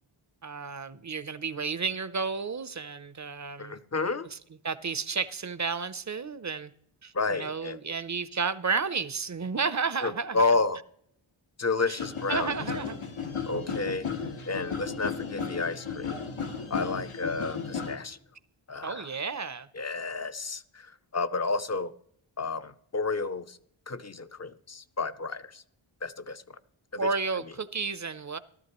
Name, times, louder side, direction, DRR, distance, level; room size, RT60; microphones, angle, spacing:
voice 1, 0.4-3.8 4.3-4.4 4.6-6.7 7.0-10.4 11.9-12.0 12.3-13.1 18.8-19.7 27.0-28.4, right 5 dB, 35° right, 0.6 m, -32 dB
voice 2, 3.6-4.3 7.1-7.8 10.0-10.8 11.6-12.5 13.5-14.1 14.4-16.2 16.7-18.2 18.7-19.1 19.7-21.9 22.4-23.6 23.9-25.6 26.0-26.6 26.9-27.1, left 3 dB, 35° left, 0.6 m, -31 dB
sound 1, 12.0-18.0, left 5 dB, 85° left, 1.4 m, -34 dB
14.5 x 13.0 x 3.0 m
wide cardioid pair, 45°, 49 cm